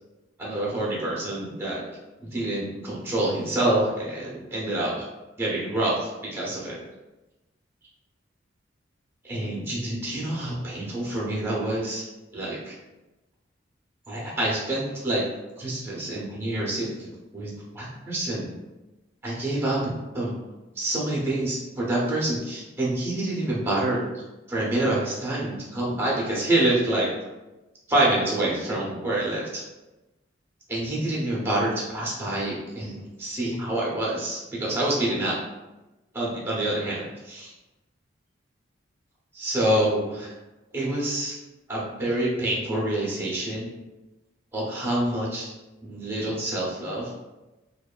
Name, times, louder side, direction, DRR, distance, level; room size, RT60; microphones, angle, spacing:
voice 1, 0.4-1.8 2.2-5.0 5.4-6.8 9.2-12.0 12.3-12.7 14.1-15.2 15.6-18.5 19.2-20.3 20.8-24.1 24.5-27.1 27.9-29.6 30.7-35.4 36.1-37.5 39.3-40.3 40.7-41.4 41.7-43.7 44.5-45.5 45.8-47.1, right 1 dB, 15° right, -5 dB, 0.7 m, -27 dB
2.7 x 2.3 x 2.2 m, 1.0 s
head